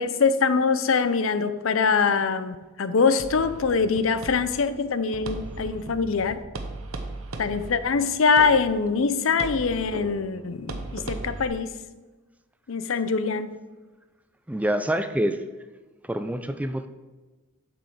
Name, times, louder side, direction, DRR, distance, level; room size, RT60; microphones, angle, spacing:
voice 1, 0.0-6.4 7.4-11.7 12.7-13.5, left 5 dB, 65° left, 12 dB, 0.5 m, -23 dB
sound 1, 3.2-11.5, right 2 dB, 75° right, 0.9 m, -38 dB
voice 2, 14.5-15.4 16.1-16.9, right 1 dB, 5° right, 9 dB, 0.3 m, -26 dB
7.6 x 6.3 x 5.1 m, 1.2 s
head